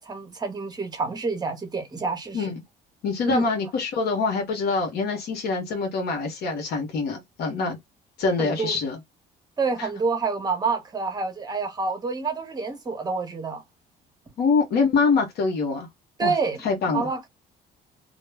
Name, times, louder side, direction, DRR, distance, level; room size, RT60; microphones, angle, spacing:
voice 1, 0.0-2.5 3.2-3.5 8.4-8.8 9.6-13.6 16.2-16.6 16.9-17.3, right 4 dB, 25° right, 0.9 m, -28 dB
voice 2, 3.0-7.8 8.2-9.0 9.8-9.9 14.4-15.9 16.2-16.3 16.6-17.1, left 4 dB, 70° left, 1.0 m, -24 dB
2.3 x 2.2 x 3.3 m
cardioid pair, 110°, 17 cm